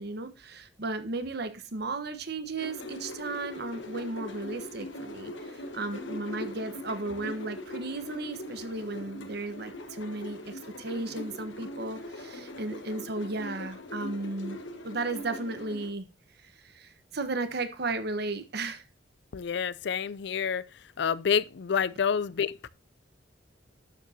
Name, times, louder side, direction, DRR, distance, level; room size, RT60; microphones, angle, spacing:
voice 1, 0.0-14.6 14.8-16.1 16.4-18.8, right 3 dB, 60° right, 1.2 m, -35 dB
sound 1, 2.6-15.9, left 1 dB, 85° left, 1.4 m, -41 dB
voice 2, 19.3-20.6 21.0-22.7, left 7 dB, 65° left, 0.4 m, -28 dB
12.0 x 7.6 x 2.8 m
head